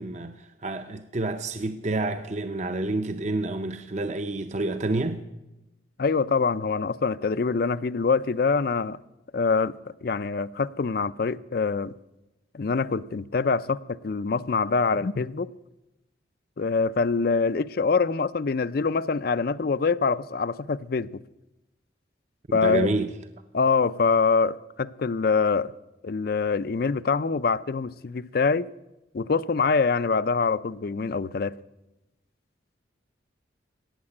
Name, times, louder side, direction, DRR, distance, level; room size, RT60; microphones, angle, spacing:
voice 1, 0.0-5.2 22.6-23.1, right 2 dB, 40° right, 0.6 m, -29 dB
voice 2, 6.0-9.0 9.3-9.7 10.0-11.9 12.5-15.5 16.6-21.2 22.5-22.9 23.5-25.7 26.0-28.7 29.1-31.5, left 4 dB, 55° left, 0.4 m, -24 dB
17.0 x 7.5 x 9.8 m
head